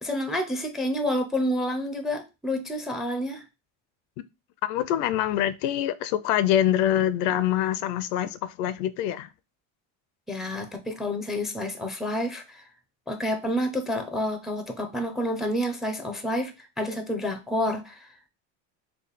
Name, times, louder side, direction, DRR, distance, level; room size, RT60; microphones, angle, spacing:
voice 1, 0.0-3.4 10.3-12.6 13.1-18.1, left 1 dB, ahead, 0.4 m, -29 dB
voice 2, 4.7-9.3, left 11 dB, 75° left, 0.5 m, -25 dB
3.3 x 2.2 x 4.0 m
cardioid pair, 135°, 39 cm